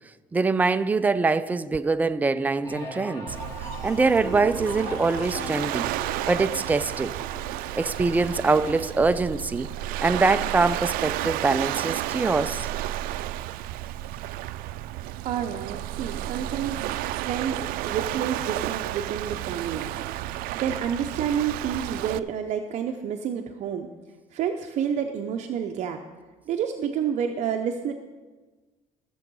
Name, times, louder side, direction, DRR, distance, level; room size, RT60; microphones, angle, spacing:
voice 1, 0.3-3.3 3.8-5.9 6.3-7.1 7.7-9.7 10.0-12.7, right 3 dB, 10° right, 0.3 m, -23 dB
sound 1, 2.6-12.2 12.6-13.1, left 1 dB, 25° left, 2.1 m, -41 dB
Waves surf, 3.3-22.2, right 14 dB, 90° right, 0.4 m, -32 dB
voice 2, 15.2-19.9 20.5-23.9 24.3-26.0 26.5-27.9, right 8 dB, 50° right, 0.6 m, -29 dB
13.5 x 7.0 x 5.4 m
cardioid pair, 160°, 15 cm